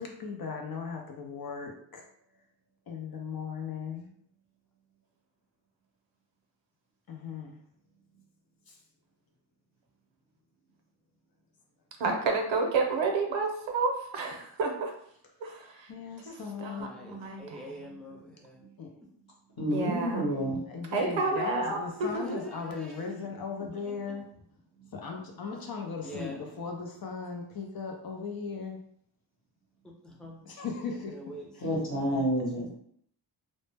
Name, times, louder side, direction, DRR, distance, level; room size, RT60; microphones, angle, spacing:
voice 1, 0.0-2.1 2.9-4.1 7.1-7.6 8.7-8.8 13.4-13.5 15.9-16.9 18.8-18.9 20.7-24.3 24.9-28.8 30.4-31.2 31.5-31.7, left 5 dB, 55° left, 2 dB, 0.5 m, -37 dB
voice 2, 12.0-14.9 15.4-15.9 16.3-16.4 16.6-17.8 19.7-20.3 20.9-22.4, right 3 dB, 80° right, 3 dB, 0.6 m, -30 dB
voice 3, 16.8-18.6 22.2-23.2 26.0-26.4 30.0-30.4 31.1-31.5 31.9-32.1 32.5-32.7, equal, ahead, -2 dB, 0.5 m, -45 dB
voice 4, 19.6-20.6 31.6-32.7, equal, 35° left, -3 dB, 0.9 m, -29 dB
2.0 x 2.0 x 3.2 m, 0.66 s
wide cardioid pair, 95°, 45 cm